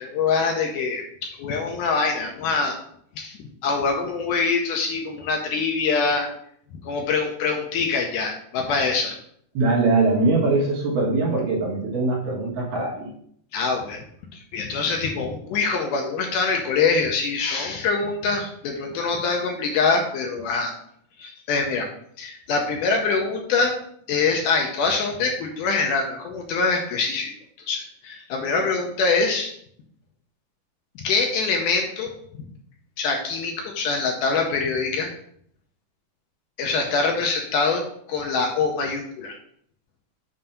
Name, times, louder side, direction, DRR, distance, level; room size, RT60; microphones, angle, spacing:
voice 1, 0.0-2.8 3.2-6.3 6.9-9.2 13.5-14.0 14.3-20.7 21.2-21.9 22.2-23.8 24.1-27.3 27.6-29.5 31.0-32.1 33.0-35.1 36.6-39.4, left 4 dB, 75° left, 2 dB, 2.0 m, -24 dB
voice 2, 9.5-13.1, right 3 dB, 70° right, -3 dB, 2.9 m, -22 dB
7.6 x 2.7 x 5.6 m, 0.66 s
omnidirectional pair, 4.1 m